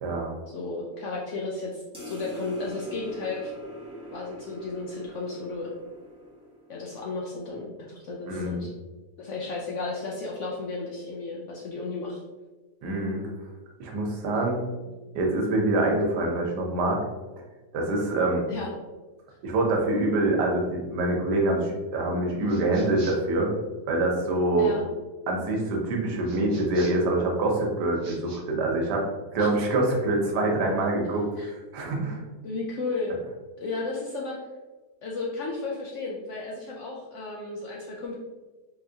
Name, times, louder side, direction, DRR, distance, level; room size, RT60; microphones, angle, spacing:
voice 1, 0.0-0.3 8.3-8.7 12.8-13.3 13.8-14.6 15.1-17.0 17.7-18.4 19.4-23.5 23.9-24.7 25.3-29.0 29.3-32.2, right 2 dB, 85° right, 0 dB, 1.4 m, -25 dB
voice 2, 0.5-3.5 4.1-5.7 6.7-8.7 9.2-12.2 14.9-15.0 18.5-18.7 24.6-24.8 29.4-29.5 31.4-31.5 32.4-33.2 33.6-34.4 35.0-38.2, left 3 dB, 65° left, -3 dB, 0.7 m, -33 dB
sound 1, 1.9-6.8, equal, 5° right, 0.6 m, -42 dB
sound 2, 22.5-23.4 26.2-27.1 27.9-28.4, right 2 dB, 65° right, 0.8 m, -46 dB
3.8 x 2.9 x 2.7 m, 1.2 s
omnidirectional pair, 1.7 m